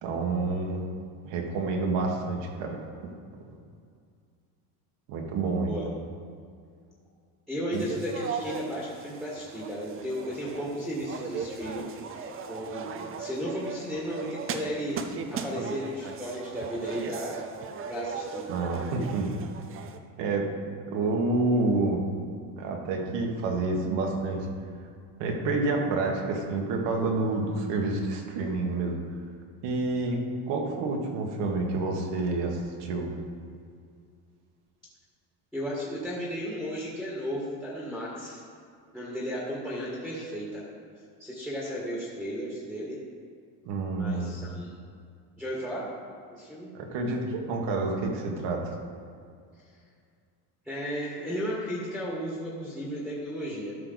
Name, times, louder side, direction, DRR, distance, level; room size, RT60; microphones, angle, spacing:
voice 1, 0.0-0.8 1.2-2.8 5.1-5.7 7.7-7.8 18.5-19.3 20.2-20.5 20.9-22.0 22.6-24.5 25.2-29.0 29.6-30.2 30.5-33.1 43.7-44.4 46.7-48.7, right 3 dB, 70° right, 1 dB, 1.8 m, -28 dB
voice 2, 7.5-11.9 12.1-12.9 13.2-15.0 15.3-17.4 17.9-18.5 35.5-38.4 38.9-40.6 41.2-43.0 43.9-44.7 45.4-45.9 46.3-46.7 50.6-53.7, equal, ahead, -7 dB, 1.7 m, -34 dB
sound 1, 7.7-20.0, right 5 dB, 30° right, 0.6 m, -38 dB
13.0 x 5.8 x 4.1 m, 2.3 s
cardioid pair, 140°, 45 cm